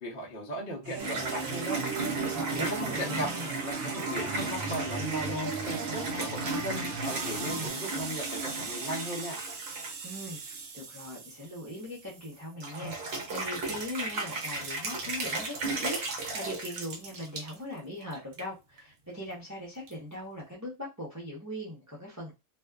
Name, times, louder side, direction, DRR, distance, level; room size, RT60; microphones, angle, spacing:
voice 1, 0.0-1.8 2.5-3.3 3.6-9.4, equal, 50° left, 0.9 m, -37 dB
sound 1, 0.8-7.7, right 4 dB, 85° right, 0.4 m, -37 dB
sound 2, 1.0-12.3 12.6-17.5 18.0-18.4 18.8-18.9 19.9-20.0, right 3 dB, 55° right, 0.7 m, -35 dB
voice 2, 2.3-3.5 10.0-10.4 10.7-22.3, left 1 dB, 20° right, 0.4 m, -40 dB
2.5 x 2.3 x 2.3 m
omnidirectional pair, 1.5 m